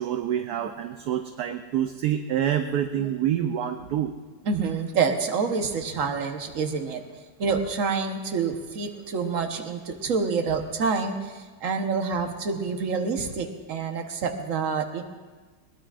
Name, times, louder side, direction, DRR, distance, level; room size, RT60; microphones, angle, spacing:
voice 1, 0.0-4.1, right 10 dB, 65° right, 6 dB, 1.1 m, -27 dB
voice 2, 4.5-7.0 7.4-15.0, right 5 dB, 50° right, 5 dB, 1.4 m, -27 dB
21.0 x 20.0 x 2.5 m, 1.4 s
omnidirectional pair, 2.0 m